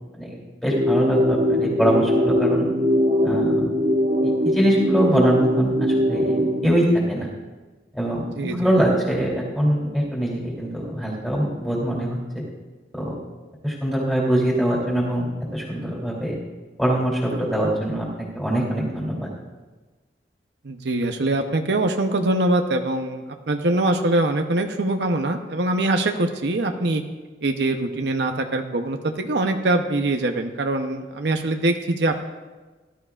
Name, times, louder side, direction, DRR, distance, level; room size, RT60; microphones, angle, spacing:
voice 1, 0.2-2.6 3.2-3.8 4.4-7.3 7.9-12.2 13.0-13.2 13.6-16.3 16.8-18.1 18.3-19.3, equal, ahead, -5 dB, 3.0 m, -23 dB
sound 1, 0.7-6.7, equal, 55° right, 1.4 m, -21 dB
voice 2, 8.4-8.7 20.6-27.0 27.4-32.2, right 2 dB, 70° right, 5 dB, 0.8 m, -23 dB
18.0 x 12.0 x 2.4 m, 1.3 s
head